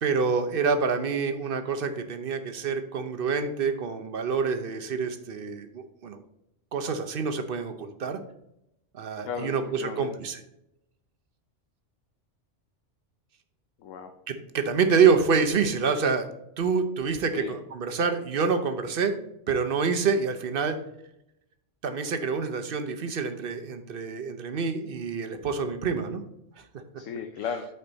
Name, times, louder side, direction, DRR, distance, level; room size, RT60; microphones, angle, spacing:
voice 1, 0.0-6.2 6.7-8.2 8.9-10.4 14.3-16.3 16.6-19.2 19.5-20.8 21.8-26.2, right 5 dB, 55° right, 7 dB, 0.8 m, -27 dB
voice 2, 9.2-10.1 13.8-14.1 17.3-17.5 27.0-27.7, left 6 dB, 85° left, 5 dB, 1.0 m, -35 dB
8.7 x 4.5 x 4.0 m, 0.83 s
omnidirectional pair, 1.3 m